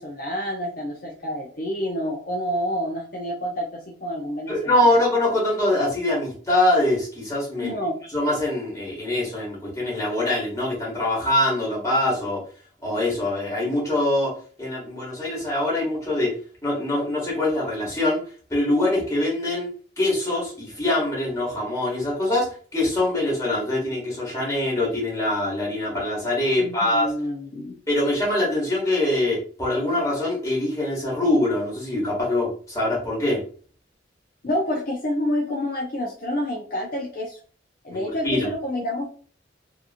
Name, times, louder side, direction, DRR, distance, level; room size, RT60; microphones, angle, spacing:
voice 1, 0.0-5.0 7.6-7.9 26.6-27.8 34.4-37.4 37.8-39.1, equal, 50° left, -2 dB, 0.5 m, -28 dB
voice 2, 4.5-7.8 8.1-12.4 12.8-14.3 14.6-16.3 16.6-18.2 18.5-19.7 20.0-22.5 22.7-27.1 27.9-33.4 37.9-38.5, left 1 dB, 15° left, -5 dB, 1.2 m, -23 dB
2.8 x 2.5 x 2.5 m, 0.43 s
head